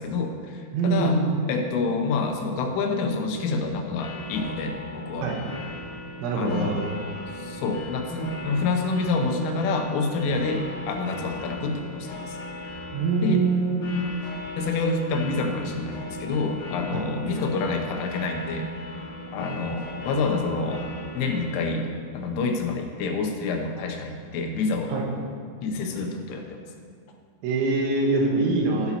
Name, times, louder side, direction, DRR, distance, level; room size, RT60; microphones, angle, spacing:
voice 1, 0.0-1.2 1.5-5.3 6.4-6.8 7.3-12.4 13.2-13.4 14.6-18.7 19.3-20.8 21.2-21.9 22.1-24.9 25.6-26.6, left 3 dB, 90° left, 3 dB, 3.4 m, -27 dB
voice 2, 0.7-1.3 5.2-5.4 6.2-6.9 12.9-13.8 16.9-17.0 24.9-25.0 27.4-28.9, right 3 dB, 80° right, -1 dB, 3.5 m, -24 dB
sound 1, 4.0-21.9, left 1 dB, 65° left, 2.5 m, -38 dB
14.5 x 8.1 x 2.9 m, 2.1 s
omnidirectional pair, 5.5 m